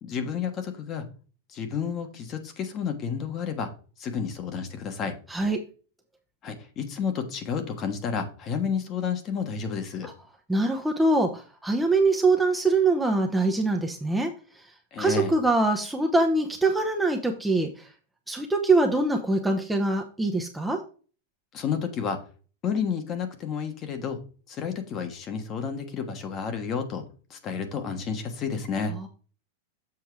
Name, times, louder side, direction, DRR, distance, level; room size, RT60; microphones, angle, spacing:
voice 1, 0.0-1.1 1.5-3.7 4.0-5.2 6.4-10.1 14.9-15.3 21.5-22.2 22.6-24.2 24.5-27.0 27.3-28.9, left 6 dB, 30° left, 7 dB, 1.3 m, -31 dB
voice 2, 5.3-5.6 10.0-10.1 10.5-14.7 15.0-17.9 18.3-20.8 28.9-29.1, right 2 dB, 5° right, 3 dB, 0.7 m, -24 dB
7.3 x 4.5 x 4.7 m, 0.37 s
supercardioid pair, 150°, 0 cm